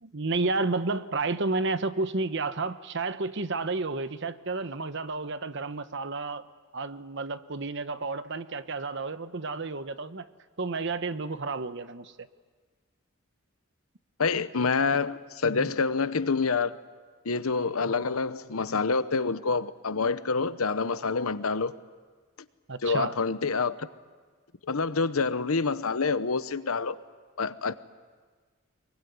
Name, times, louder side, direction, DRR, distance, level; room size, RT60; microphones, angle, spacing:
voice 1, 0.0-6.5 6.7-10.3 10.6-12.1 15.4-15.7 22.7-23.1, right 3 dB, 60° right, 1.0 m, -31 dB
voice 2, 14.2-16.8 17.2-21.7 22.8-23.9 24.7-27.0 27.4-27.7, left 4 dB, 85° left, 0.9 m, -27 dB
24.0 x 22.5 x 9.5 m
head